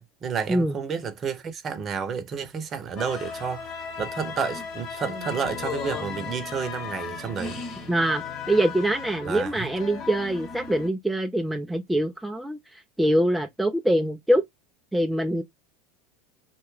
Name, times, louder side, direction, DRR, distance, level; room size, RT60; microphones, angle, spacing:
voice 1, 0.0-7.6 9.2-9.7, right 6 dB, 35° right, 0.7 m, -31 dB
sound 1, 3.0-10.9, left 5 dB, 45° left, 1.0 m, -36 dB
voice 2, 7.9-14.4 14.9-15.4, right 1 dB, 5° right, 0.4 m, -24 dB
2.7 x 2.3 x 3.1 m
hypercardioid pair, 95°, 0 cm